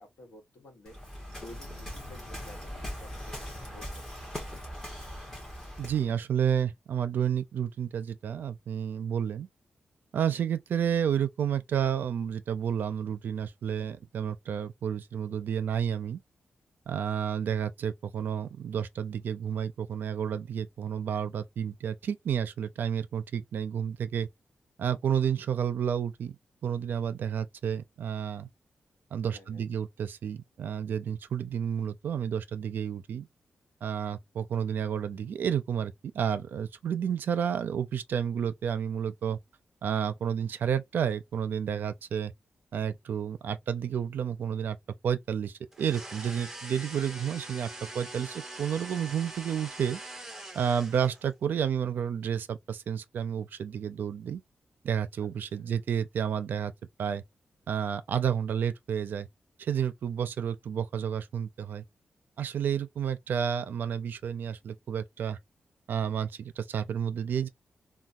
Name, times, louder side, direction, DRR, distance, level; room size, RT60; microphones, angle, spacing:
voice 1, 0.0-4.1 29.3-29.7 55.2-55.8, left 1 dB, 70° left, 1.1 m, -53 dB
Waves surf, 0.8-6.1, equal, 15° left, 1.3 m, -40 dB
voice 2, 5.8-9.5 10.1-16.2 16.9-24.3 24.8-26.3 26.6-28.5 29.1-33.3 33.8-39.4 39.8-42.3 42.7-44.8 45.0-50.0 50.5-54.4 54.8-56.7 57.0-57.2 57.7-59.3 59.6-61.8 62.4-65.4 65.9-67.5, right 8 dB, 70° right, 0.4 m, -31 dB
sound 1, 45.7-51.3, right 2 dB, 10° right, 0.6 m, -43 dB
3.2 x 2.2 x 2.5 m
wide cardioid pair, 170°, 3 cm